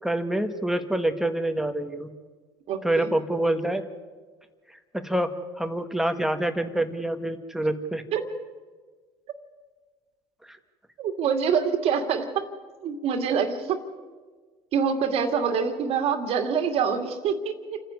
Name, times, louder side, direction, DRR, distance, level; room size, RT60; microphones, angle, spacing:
voice 1, 0.0-2.1 2.8-3.8 4.9-5.3 5.6-8.0 10.5-10.6, right 1 dB, 5° right, 7 dB, 1.6 m, -26 dB
voice 2, 2.7-3.1 8.1-8.3 11.0-12.5 12.8-13.8 14.7-17.8, right 6 dB, 60° right, 6 dB, 2.3 m, -25 dB
28.0 x 10.0 x 9.5 m, 1.4 s
supercardioid pair, 90°, 12 cm